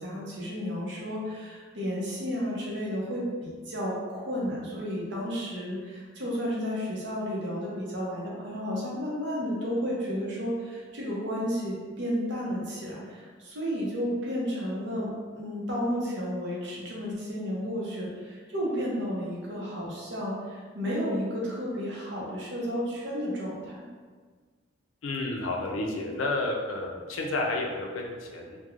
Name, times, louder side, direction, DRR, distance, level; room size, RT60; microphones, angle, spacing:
voice 1, 0.0-23.8, equal, 65° right, -5 dB, 0.7 m, -32 dB
voice 2, 25.0-28.6, left 2 dB, 85° left, 0 dB, 0.4 m, -31 dB
3.0 x 2.2 x 2.4 m, 1.5 s
head